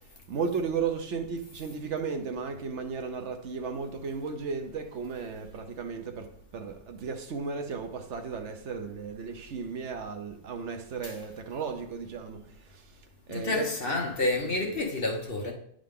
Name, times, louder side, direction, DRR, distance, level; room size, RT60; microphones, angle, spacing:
voice 1, 0.3-6.3 6.5-12.8 13.3-13.7, right 5 dB, 60° right, 0.9 m, -34 dB
voice 2, 13.3-15.5, left 2 dB, 45° left, 1.0 m, -29 dB
9.0 x 3.8 x 3.6 m
omnidirectional pair, 1.6 m